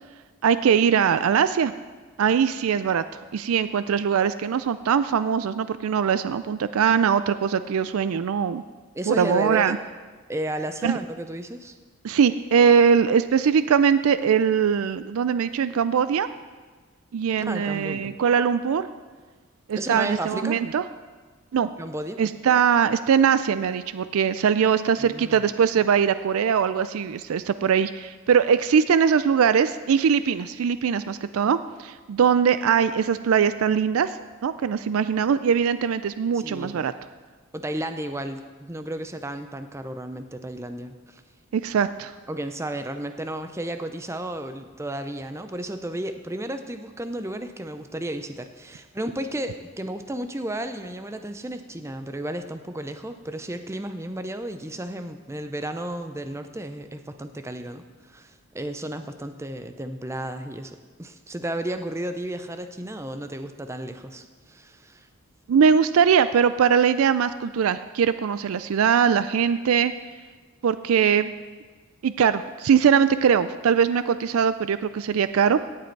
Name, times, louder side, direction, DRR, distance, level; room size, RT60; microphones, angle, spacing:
voice 1, 0.4-1.7 2.2-3.0 3.3-8.6 9.1-9.8 10.8-11.0 12.0-16.3 17.1-18.9 19.7-20.8 21.5-21.7 22.2-34.2 34.4-36.9 41.5-42.1 65.5-69.9 70.6-71.3 72.0-75.6, right 7 dB, 80° right, 13 dB, 0.4 m, -21 dB
voice 2, 8.9-9.8 10.3-11.7 17.4-18.1 19.7-20.6 21.8-22.2 25.0-25.4 36.3-36.9 37.5-41.2 42.3-65.1, right 1 dB, 15° right, 8 dB, 0.5 m, -33 dB
17.0 x 7.6 x 4.6 m, 1.4 s
head